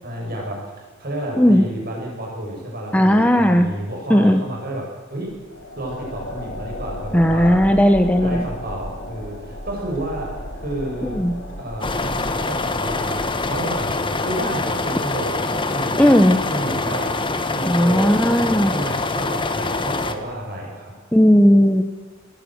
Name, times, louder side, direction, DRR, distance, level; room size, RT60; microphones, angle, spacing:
voice 1, 0.0-5.4 5.7-7.7 8.2-11.2 11.6-16.1 16.5-17.2 17.5-21.0, right 1 dB, 50° right, -1 dB, 7.8 m, -31 dB
voice 2, 2.9-3.7 4.1-4.4 7.1-8.5 11.1-11.3 16.0-16.4 17.7-18.7 21.1-21.8, equal, 5° left, 6 dB, 1.0 m, -15 dB
sound 1, 5.3-14.6, left 1 dB, 75° left, 5.2 m, -35 dB
sound 2, 11.8-20.2, left 3 dB, 25° left, 1.4 m, -24 dB
21.0 x 16.0 x 8.0 m, 1.3 s
head